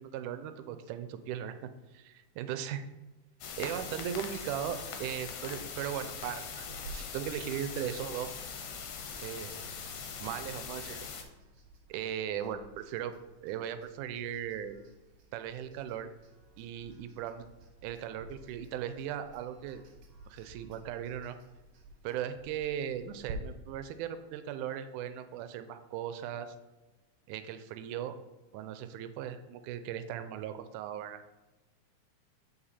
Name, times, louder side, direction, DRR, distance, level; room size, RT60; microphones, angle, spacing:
voice 1, 0.0-1.6 1.9-2.9 3.6-8.3 9.2-9.5 10.2-11.1 11.9-13.1 13.4-14.8 15.3-16.1 16.6-17.5 17.8-19.8 20.3-21.4 22.0-26.6 27.3-28.2 28.5-31.4, right 10 dB, 90° right, 10 dB, 2.1 m, -38 dB
sound 1, 3.4-11.2, left 6 dB, 70° left, 2.0 m, -41 dB
sound 2, 6.7-23.3, right 3 dB, 70° right, 2.3 m, -54 dB
8.6 x 4.7 x 4.1 m, 1.1 s
omnidirectional pair, 3.5 m